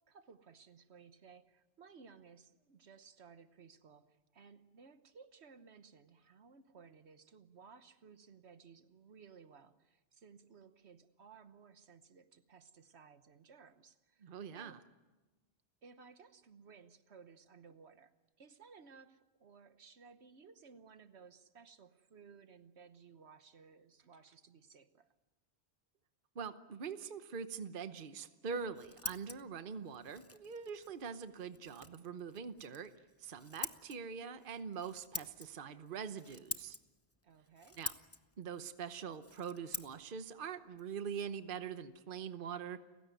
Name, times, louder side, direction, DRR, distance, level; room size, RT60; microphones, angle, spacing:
voice 1, 0.1-14.8 15.8-25.1 37.2-37.8, right 5 dB, 70° right, 11 dB, 1.3 m, -59 dB
voice 2, 14.2-14.8 26.3-32.9 33.2-36.8 37.8-37.9 38.4-42.8, right 6 dB, 50° right, 10 dB, 1.1 m, -43 dB
Scissors, 28.4-42.0, left 2 dB, 15° left, 0.8 m, -49 dB
30.0 x 16.0 x 9.3 m, 1.2 s
omnidirectional pair, 1.2 m